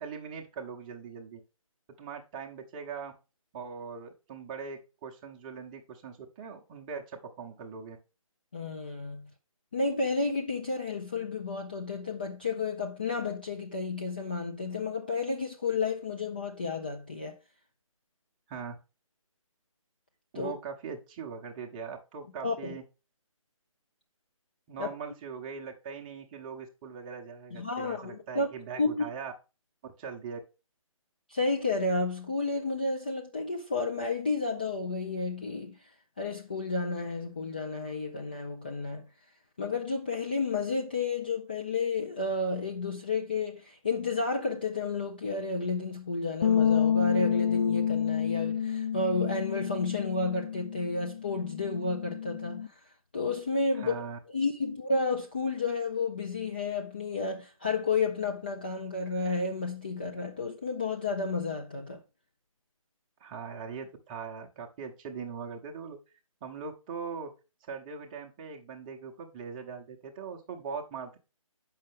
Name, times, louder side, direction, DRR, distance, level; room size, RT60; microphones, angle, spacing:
voice 1, 0.0-1.4 2.0-3.1 3.5-8.0 18.5-18.8 20.3-22.8 24.7-29.3 29.8-30.4 53.7-54.2 63.2-66.0 66.4-67.3 67.6-71.2, right 6 dB, 15° right, 0.8 m, -41 dB
voice 2, 8.5-9.3 9.7-17.3 20.3-20.5 22.4-22.8 24.8-24.9 27.5-28.5 28.8-29.0 31.3-35.8 36.2-39.0 39.6-52.7 53.1-54.0 54.3-62.0, left 3 dB, 15° left, 0.3 m, -31 dB
sound 1, 46.4-52.7, left 8 dB, 55° left, 0.9 m, -29 dB
7.3 x 5.6 x 3.4 m
figure-of-eight pair, 145°, 18 cm